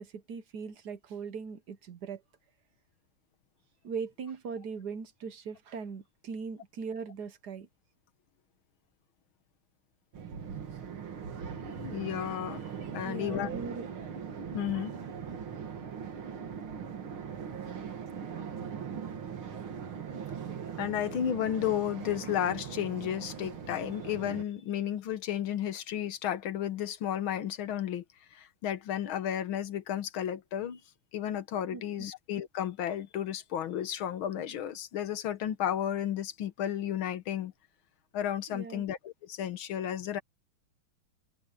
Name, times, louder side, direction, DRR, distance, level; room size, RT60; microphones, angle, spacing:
voice 1, 0.0-2.2 3.8-7.7 13.0-13.9 31.7-31.8 38.5-38.8, right 5 dB, 60° right, 1.4 m, -40 dB
sound 1, 10.1-24.4, right 7 dB, 80° right, 2.7 m, -40 dB
voice 2, 11.6-12.6 12.9-13.5 14.5-14.9 20.8-28.0 28.3-30.8 31.1-37.5 38.1-40.2, left 10 dB, 75° left, 1.9 m, -33 dB
omnidirectional pair, 2.3 m